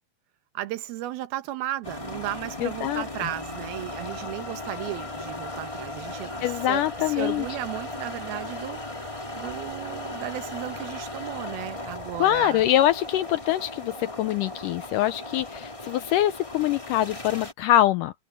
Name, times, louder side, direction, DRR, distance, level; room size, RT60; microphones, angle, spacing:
voice 1, 0.5-12.6, right 14 dB, 85° right, 3.0 m, -35 dB
sound 1, 1.8-17.5, left 2 dB, 10° left, 1.6 m, -37 dB
voice 2, 2.6-3.0 6.4-7.5 12.2-18.1, left 13 dB, 80° left, 1.9 m, -24 dB
omnidirectional pair, 4.3 m